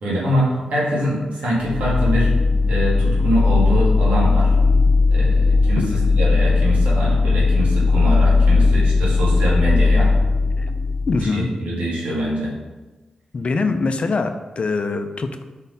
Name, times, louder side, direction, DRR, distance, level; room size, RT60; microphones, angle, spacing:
voice 1, 0.0-2.3 2.7-4.5 5.1-5.8 6.2-10.1 11.2-12.5, equal, 90° right, -6 dB, 2.3 m, -23 dB
sound 1, 1.6-11.2, left 3 dB, 70° right, 1.4 m, -17 dB
voice 2, 11.1-11.5 13.3-15.4, left 3 dB, 55° left, 7 dB, 0.6 m, -23 dB
5.4 x 4.1 x 5.4 m, 1.2 s
cardioid pair, 50°, 2 cm